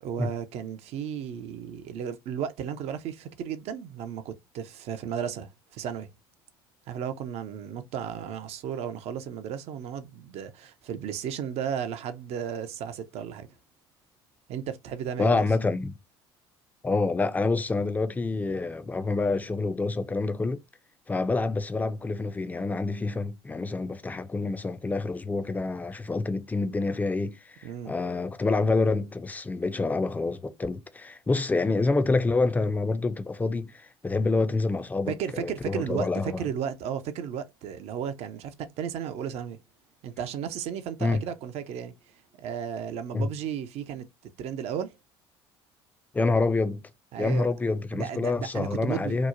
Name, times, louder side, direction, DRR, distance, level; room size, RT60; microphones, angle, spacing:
voice 1, 0.0-6.1 6.9-13.5 14.5-15.5 27.6-27.9 35.1-39.6 40.0-41.9 42.4-44.1 44.4-45.0 47.1-47.5 47.9-49.3, right 8 dB, 55° right, 0.4 m, -34 dB
voice 2, 15.2-16.0 16.8-20.6 21.1-36.4 41.0-41.2 43.1-43.3 46.1-46.8 47.2-49.3, left 3 dB, 10° left, 0.4 m, -27 dB
2.9 x 2.1 x 2.4 m
hypercardioid pair, 60°, 13 cm